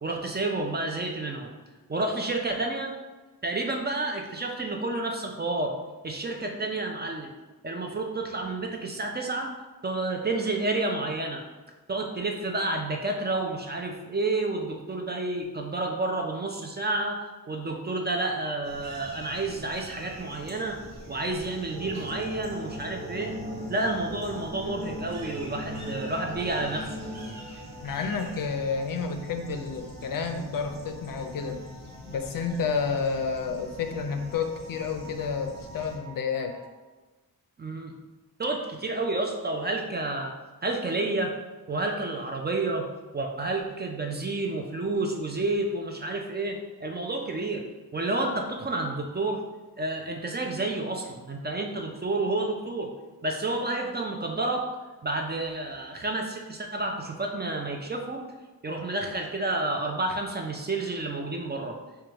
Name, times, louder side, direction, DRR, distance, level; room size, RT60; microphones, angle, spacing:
voice 1, 0.0-1.5 1.9-2.9 3.4-5.8 6.0-7.3 7.6-9.5 9.8-11.4 11.9-17.2 17.5-20.8 21.1-23.3 23.7-27.0 37.6-37.9 38.4-40.3 40.6-41.3 41.7-42.9 43.1-47.6 47.9-49.4 49.8-52.9 53.2-54.7 55.0-58.3 58.6-61.8, right 2 dB, 30° right, 2 dB, 0.4 m, -30 dB
sound 1, 18.6-36.0, right 1 dB, 45° right, 1.0 m, -45 dB
sound 2, 20.2-36.7, equal, 15° left, 0.7 m, -49 dB
sound 3, 21.8-27.3, equal, 65° right, 1.2 m, -38 dB
voice 2, 27.8-31.6 32.1-36.5, left 5 dB, 60° left, 6 dB, 0.5 m, -30 dB
4.8 x 2.3 x 2.9 m, 1.2 s
wide cardioid pair, 95°, 38 cm